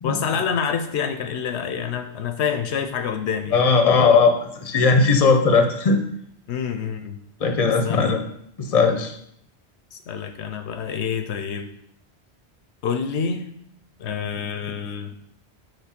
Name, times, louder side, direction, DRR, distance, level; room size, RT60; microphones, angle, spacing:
voice 1, 0.0-3.6 6.5-7.2 7.6-8.1 9.9-11.7 12.8-13.5 14.0-15.1, left 7 dB, 75° left, 8 dB, 0.8 m, -27 dB
voice 2, 3.5-6.0 7.4-8.2 8.6-9.1, left 4 dB, 40° left, 5 dB, 0.7 m, -18 dB
5.9 x 3.4 x 5.8 m, 0.70 s
omnidirectional pair, 1.2 m